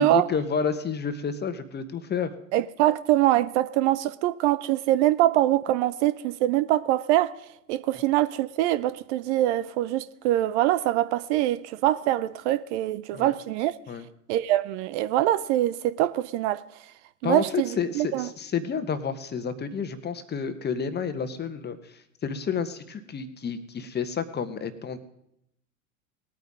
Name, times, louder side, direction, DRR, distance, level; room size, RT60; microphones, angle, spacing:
voice 1, 0.0-2.3 13.1-13.3 13.9-14.1 17.2-21.8 22.2-25.0, left 6 dB, 25° left, 1.3 m, -30 dB
voice 2, 2.5-7.3 7.7-13.7 14.3-16.6 17.2-18.3, right 14 dB, 50° right, 0.7 m, -24 dB
19.5 x 9.3 x 3.7 m
hypercardioid pair, 85°, 44 cm